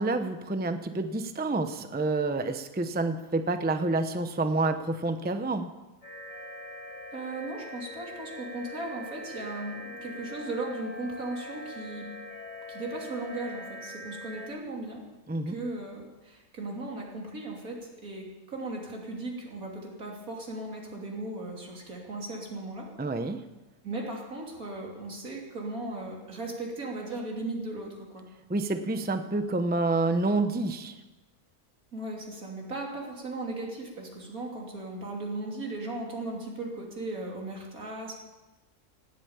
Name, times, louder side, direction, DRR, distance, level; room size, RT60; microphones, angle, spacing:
voice 1, 0.0-5.7 15.3-15.6 23.0-23.4 28.5-31.0, right 2 dB, 10° right, 8 dB, 0.6 m, -28 dB
sound 1, 6.0-14.5, left 1 dB, 60° left, 5.8 m, -42 dB
voice 2, 7.1-12.1 12.7-15.0 15.5-22.9 23.8-28.3 31.9-38.2, right 2 dB, 80° right, -1 dB, 3.5 m, -37 dB
18.0 x 9.1 x 8.8 m, 1.2 s
omnidirectional pair, 1.5 m